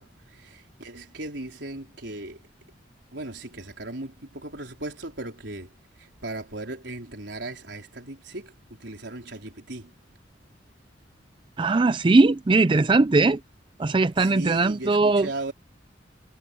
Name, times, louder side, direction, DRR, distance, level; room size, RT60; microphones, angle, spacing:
voice 1, 0.0-2.4 3.1-5.7 6.0-9.9 14.2-15.5, right 2 dB, 70° right, 4.3 m, -37 dB
voice 2, 11.6-13.4 13.8-15.3, right 3 dB, 25° right, 0.4 m, -20 dB
head